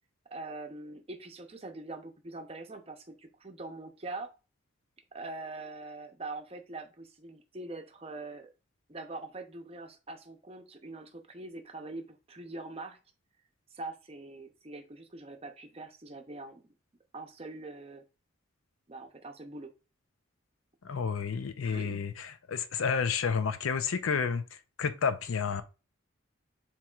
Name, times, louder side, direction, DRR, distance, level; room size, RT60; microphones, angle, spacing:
voice 1, 0.3-4.3 5.1-8.5 8.9-13.0 13.7-16.6 17.1-18.0 18.9-19.7 21.6-22.0, right 2 dB, 30° right, 0.6 m, -43 dB
voice 2, 20.8-25.6, left 6 dB, 85° left, 0.5 m, -31 dB
7.3 x 3.1 x 2.4 m
head